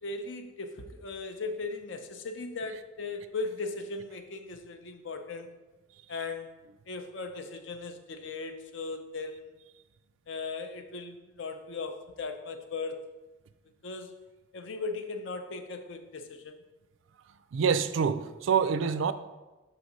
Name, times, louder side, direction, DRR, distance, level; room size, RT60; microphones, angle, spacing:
voice 1, 0.0-5.5 6.1-6.5 6.9-9.5 10.3-13.0 13.8-14.2 14.5-16.6, left 3 dB, 65° left, 7 dB, 0.6 m, -38 dB
voice 2, 17.5-19.1, right 6 dB, 75° right, 12 dB, 0.4 m, -26 dB
5.8 x 4.8 x 4.1 m, 1.1 s
head